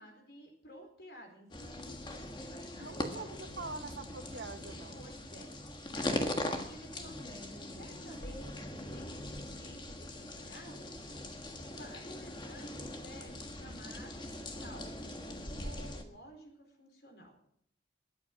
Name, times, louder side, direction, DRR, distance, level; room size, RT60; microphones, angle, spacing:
voice 1, 0.0-3.3 4.9-5.5 5.9-11.0 11.6-14.3 14.6-17.4, equal, 60° left, 3 dB, 4.2 m, -53 dB
sound 1, 1.5-16.0, left 1 dB, 25° left, 1.5 m, -41 dB
voice 2, 2.8-5.0, right 3 dB, 85° right, 7 dB, 1.4 m, -44 dB
21.5 x 8.4 x 5.9 m, 0.66 s
head